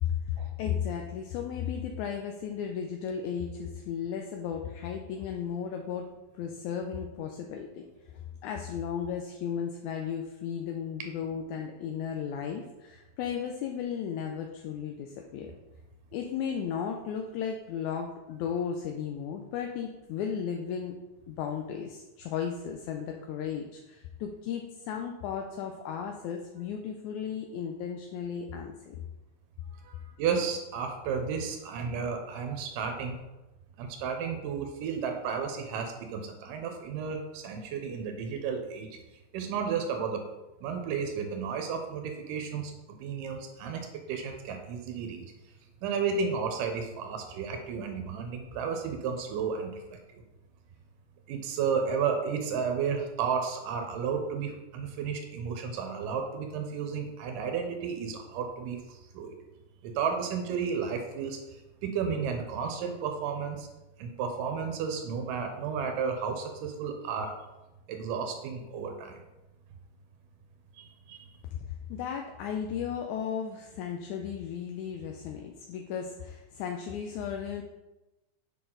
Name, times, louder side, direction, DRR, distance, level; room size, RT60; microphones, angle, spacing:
voice 1, 0.0-6.1 6.3-15.5 16.1-20.9 21.3-29.0 71.5-71.6 71.9-77.6, left 7 dB, 80° left, 3 dB, 1.9 m, -35 dB
voice 2, 29.7-33.2 33.8-38.9 39.3-40.2 40.6-42.7 43.0-45.3 45.8-50.2 51.3-59.4 59.8-63.7 64.0-67.3 67.9-69.2 70.8-71.3, right 6 dB, 90° right, 4 dB, 2.5 m, -33 dB
6.9 x 6.0 x 3.8 m, 1.0 s
omnidirectional pair, 3.7 m